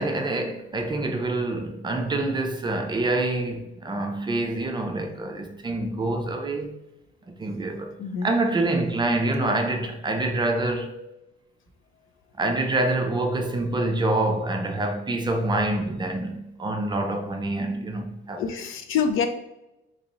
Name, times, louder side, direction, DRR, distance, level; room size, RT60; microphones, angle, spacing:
voice 1, 0.0-6.8 7.4-7.9 8.2-11.0 12.4-18.4, right 2 dB, 20° right, 0.4 m, -26 dB
voice 2, 8.0-8.3 18.4-19.3, left 6 dB, 75° left, 0.5 m, -26 dB
4.0 x 3.0 x 2.8 m
cardioid pair, 140°, 21 cm